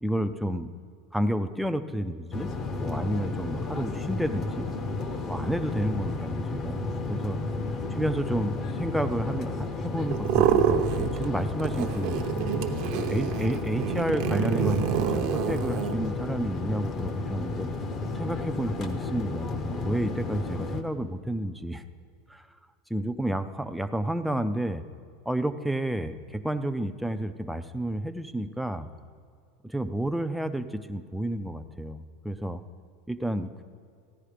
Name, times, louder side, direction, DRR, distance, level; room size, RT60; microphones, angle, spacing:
voice 1, 0.0-0.7 1.1-2.5 2.7-4.7 5.3-6.8 7.1-7.4 7.9-8.5 8.8-12.3 12.9-17.7 18.1-21.8 22.3-22.5 22.9-24.8 25.3-28.9 29.6-32.6 33.1-33.6, right 1 dB, ahead, 8 dB, 0.4 m, -30 dB
sound 1, 2.3-20.8, left 3 dB, 30° left, 0.7 m, -32 dB
sound 2, 10.1-11.3 11.6-15.9, right 8 dB, 50° right, 0.8 m, -27 dB
14.5 x 10.0 x 5.0 m, 2.3 s
supercardioid pair, 160°, 0 cm